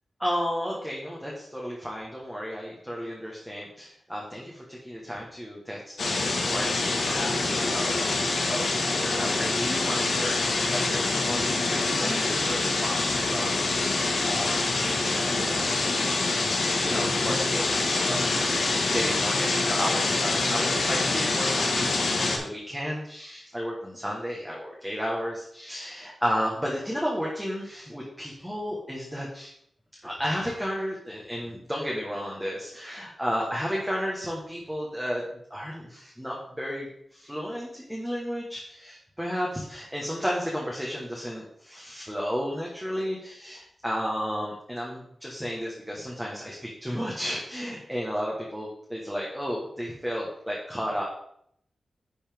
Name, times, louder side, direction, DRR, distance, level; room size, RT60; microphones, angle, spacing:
voice 1, 0.2-10.4 10.7-21.9 22.2-29.5 30.0-35.2 35.5-51.0, equal, 5° right, -3 dB, 1.3 m, -33 dB
sound 1, 6.0-22.4, left 3 dB, 75° left, 1.5 m, -26 dB
10.5 x 5.5 x 3.5 m, 0.71 s
wide cardioid pair, 180°, 0 cm